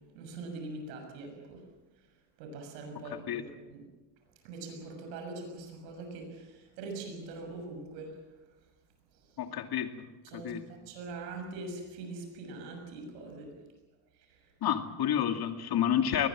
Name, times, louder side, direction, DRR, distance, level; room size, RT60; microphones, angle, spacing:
voice 1, 0.1-1.6 2.4-3.8 4.4-8.1 10.2-10.5 10.9-13.5 14.3-14.4, right 3 dB, 90° right, 4 dB, 6.7 m, -42 dB
voice 2, 3.1-3.4 9.4-10.0 10.3-10.7 14.6-16.3, left 9 dB, 50° left, 6 dB, 2.6 m, -30 dB
22.0 x 20.0 x 7.5 m, 1.1 s
supercardioid pair, 95°, 48 cm